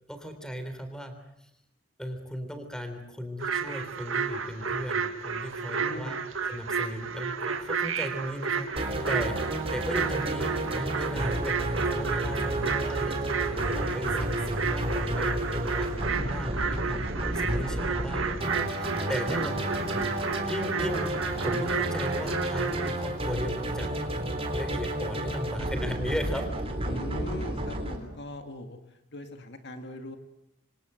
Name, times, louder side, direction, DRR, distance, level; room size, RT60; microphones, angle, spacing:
voice 1, 0.1-1.2 2.0-6.2 6.5-9.4 9.7-11.6 11.8-13.2 13.7-20.0 20.4-23.9 24.5-26.5, equal, 5° left, 8 dB, 3.6 m, -36 dB
sound 1, 3.4-22.9, right 5 dB, 65° right, 2.1 m, -32 dB
voice 2, 5.6-6.3 19.1-20.1 26.9-30.2, left 1 dB, 55° left, 6 dB, 2.2 m, -41 dB
sound 2, 8.8-28.0, right 1 dB, 25° right, 3.8 m, -31 dB
26.5 x 26.0 x 7.9 m, 0.81 s
head